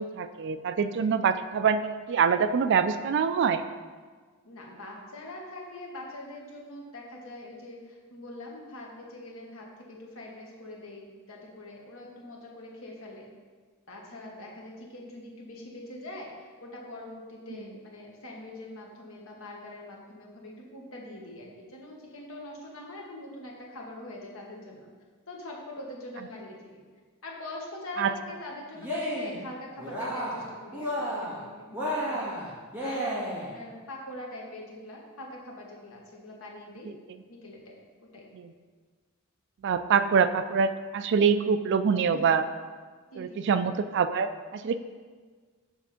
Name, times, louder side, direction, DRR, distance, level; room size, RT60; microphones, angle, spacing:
voice 1, 0.0-3.6 28.0-28.1 36.9-37.0 38.4-38.5 39.6-42.4 43.2-44.8, right 6 dB, 55° right, 11 dB, 0.3 m, -25 dB
voice 2, 4.4-13.3 13.9-24.9 25.3-26.8 27.2-32.3 32.8-36.9 37.3-38.3 42.1-42.2 43.1-43.6, left 1 dB, 65° left, -1 dB, 1.3 m, -43 dB
Cheering, 28.7-29.4 29.8-30.5 30.7-31.4 31.7-33.5, equal, 10° right, 1.6 m, -32 dB
7.2 x 3.5 x 5.8 m, 1.5 s
head